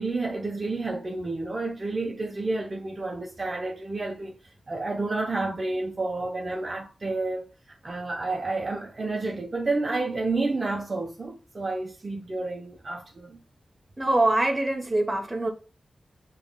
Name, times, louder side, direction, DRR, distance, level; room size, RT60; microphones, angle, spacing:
voice 1, 0.0-4.3 4.7-7.5 7.8-13.4, right 3 dB, 35° right, 0.7 m, -30 dB
voice 2, 14.0-15.5, right 2 dB, 15° right, 0.9 m, -24 dB
6.9 x 3.0 x 2.2 m
wide cardioid pair, 110°, 0 cm